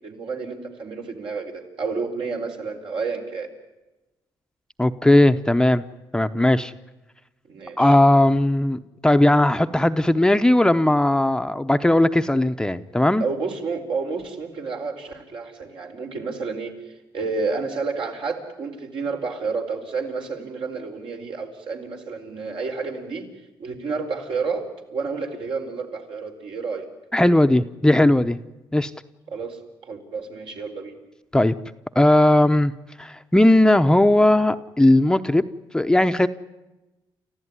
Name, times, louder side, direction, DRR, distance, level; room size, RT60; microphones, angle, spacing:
voice 1, 0.0-3.5 7.5-7.9 13.2-23.3 23.6-26.9 29.3-31.0, right 4 dB, 65° right, 2 dB, 4.5 m, -30 dB
voice 2, 4.8-5.8 6.1-6.7 7.8-13.3 27.1-28.4 28.7-28.9 31.3-31.5 32.0-32.7 33.0-35.4 35.7-36.3, left 1 dB, 10° left, 8 dB, 0.8 m, -17 dB
30.0 x 14.5 x 9.8 m, 1.1 s
cardioid pair, 95°, 9 cm